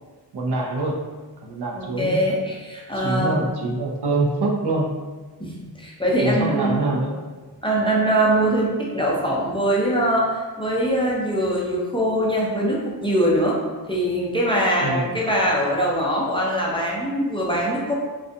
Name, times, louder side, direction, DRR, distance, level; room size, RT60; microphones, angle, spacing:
voice 1, 0.3-1.0 1.4-2.2 3.0-4.9 6.2-7.2 14.8-15.2, right 2 dB, 70° right, -1 dB, 0.5 m, -24 dB
voice 2, 1.8-3.4 5.4-6.9 7.6-13.6 13.9-18.0, right 1 dB, 15° left, -5 dB, 0.5 m, -22 dB
2.4 x 2.2 x 2.6 m, 1.3 s
wide cardioid pair, 60°, 41 cm